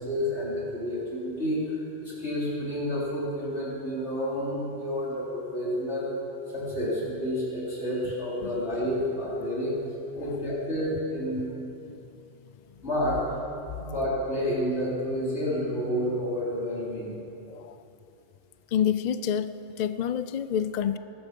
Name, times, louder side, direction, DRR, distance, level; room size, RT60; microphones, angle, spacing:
voice 1, 0.0-6.1 6.5-9.8 10.2-11.5 12.8-13.2 13.8-17.1, equal, 80° left, -6 dB, 4.3 m, -30 dB
voice 2, 17.5-17.8 18.7-19.5 19.8-21.0, left 8 dB, 55° left, 13 dB, 0.5 m, -28 dB
21.0 x 12.0 x 5.3 m, 2.8 s
omnidirectional pair, 1.1 m